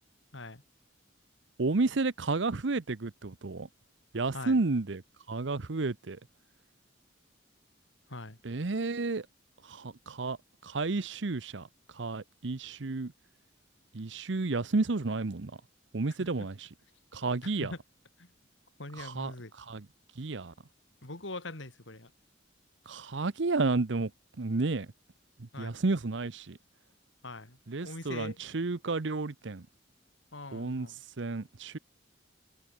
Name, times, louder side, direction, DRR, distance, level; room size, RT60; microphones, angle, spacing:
voice 1, 1.6-3.7 4.1-5.0 5.3-6.2 8.4-9.3 9.7-10.4 10.6-11.7 12.0-13.1 13.9-15.5 15.9-16.7 17.1-17.7 19.0-19.3 19.6-19.9 20.2-20.5 22.9-24.1 24.4-24.9 25.4-26.6 27.7-29.6 30.5-30.9 31.2-31.8, right 3 dB, 70° right, 0.8 m, -31 dB
voice 2, 17.4-17.8 18.2-18.3 18.8-19.5 21.0-22.1 25.5-25.8 27.2-28.4 30.3-31.0, left 2 dB, 75° left, 3.3 m, -42 dB
head